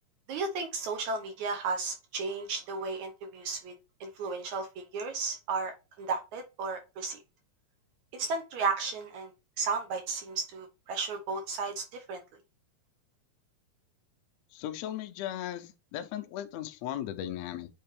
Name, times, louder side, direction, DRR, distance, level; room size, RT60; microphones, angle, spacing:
voice 1, 0.3-3.7 4.0-7.2 8.1-9.3 9.6-12.2, right 4 dB, 70° right, 1.9 m, -34 dB
voice 2, 14.5-17.7, left 11 dB, 90° left, 1.5 m, -37 dB
8.9 x 3.4 x 3.2 m
omnidirectional pair, 4.0 m